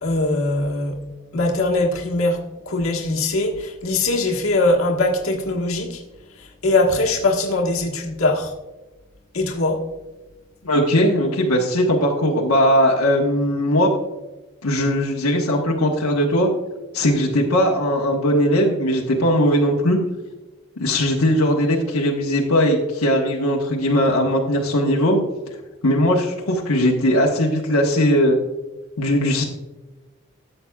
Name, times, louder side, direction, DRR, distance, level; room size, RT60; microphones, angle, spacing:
voice 1, 0.0-1.0 1.3-2.4 2.7-6.0 6.6-8.5 9.3-9.8, left 2 dB, 70° left, 0 dB, 1.4 m, -21 dB
voice 2, 10.6-13.9 14.6-16.5 16.9-20.0 20.8-25.2 25.8-28.4 29.0-29.4, equal, 90° left, -2 dB, 1.2 m, -19 dB
13.5 x 7.7 x 2.3 m, 1.1 s
head